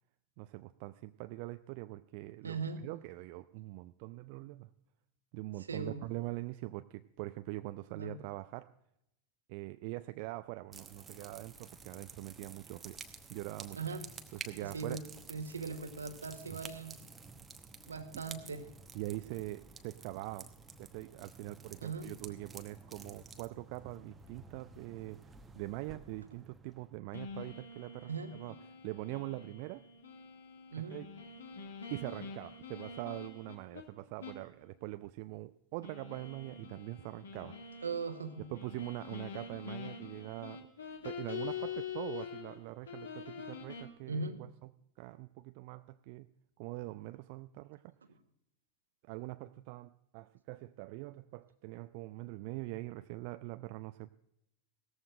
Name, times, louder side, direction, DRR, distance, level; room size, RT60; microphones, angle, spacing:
voice 1, 0.4-4.7 5.3-8.7 9.5-13.0 13.3-13.8 14.3-15.0 16.5-16.6 17.8-17.9 18.9-20.5 20.8-28.6 28.8-29.9 30.9-31.1 31.9-37.8 38.5-40.7 41.0-44.7 45.0-46.3 46.6-47.9 49.0-54.1, right 19 dB, 45° right, 11 dB, 0.3 m, -43 dB
voice 2, 2.4-2.8 5.7-6.0 7.9-8.2 13.7-14.0 14.6-15.0 15.3-17.0 17.9-18.7 21.8-22.1 28.1-28.3 30.7-31.0 37.8-38.4 44.1-44.4, right 4 dB, 75° right, 9 dB, 1.2 m, -39 dB
sound 1, 10.7-27.0, right 4 dB, 15° right, 1.0 m, -52 dB
sound 2, 27.1-33.8 34.2-34.5 34.8-34.9 35.8-42.6 42.8-43.8, left 6 dB, 65° left, 1.9 m, -45 dB
17.5 x 14.0 x 2.5 m, 0.82 s
figure-of-eight pair, 90°, 0 cm